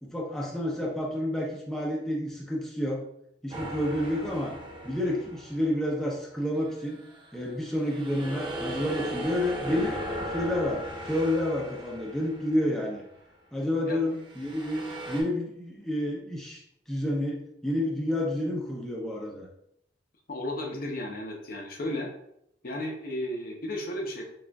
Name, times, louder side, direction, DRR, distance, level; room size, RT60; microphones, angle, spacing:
voice 1, 0.0-3.0 3.4-4.6 4.8-7.0 7.3-10.0 10.3-13.0 13.5-16.6 16.9-19.5, left 1 dB, 5° left, -3 dB, 0.5 m, -29 dB
sound 1, 3.5-6.0 6.6-13.0 14.1-15.2, equal, 25° right, 0.8 m, -37 dB
voice 2, 20.3-22.1 22.6-24.2, left 1 dB, 55° left, 1 dB, 0.7 m, -34 dB
5.9 x 2.4 x 2.3 m, 0.75 s
head